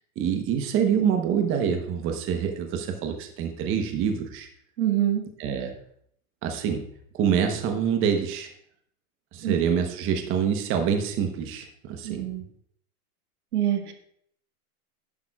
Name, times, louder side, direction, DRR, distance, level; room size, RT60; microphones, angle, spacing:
voice 1, 0.2-4.5 5.4-5.7 6.4-6.8 7.1-8.5 9.3-12.2, right 7 dB, 30° right, 5 dB, 1.0 m, -26 dB
voice 2, 4.8-5.2 9.4-9.5 12.0-12.4 13.5-13.9, right 12 dB, 80° right, 4 dB, 1.8 m, -25 dB
11.0 x 10.5 x 2.4 m, 0.67 s
hypercardioid pair, 135°, 45 cm